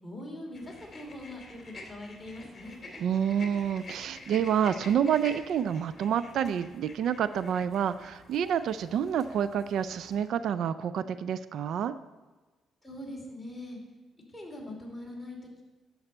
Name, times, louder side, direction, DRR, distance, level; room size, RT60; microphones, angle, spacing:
voice 1, 0.0-2.8 12.8-13.8 14.3-15.6, left 1 dB, 10° left, -2 dB, 2.9 m, -42 dB
sound 1, 0.5-10.3, left 2 dB, 30° left, 2.4 m, -48 dB
voice 2, 3.0-11.9, right 8 dB, 70° right, 14 dB, 0.3 m, -28 dB
11.0 x 7.0 x 4.3 m, 1.3 s
cardioid pair, 90°, 0 cm